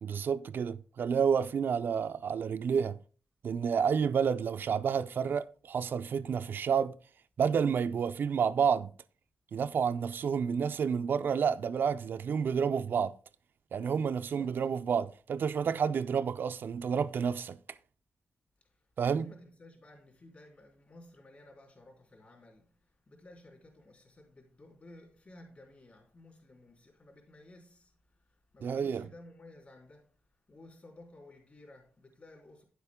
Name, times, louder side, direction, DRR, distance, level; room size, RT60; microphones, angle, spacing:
voice 1, 0.0-3.0 3.4-7.0 7.4-8.9 9.5-13.1 13.7-17.6 19.0-19.3 28.6-29.1, right 7 dB, 65° right, 0.4 m, -30 dB
voice 2, 14.1-14.6 18.6-30.2 30.5-32.6, left 2 dB, 40° left, 3.4 m, -55 dB
9.6 x 8.0 x 3.6 m
wide cardioid pair, 120°, 4 cm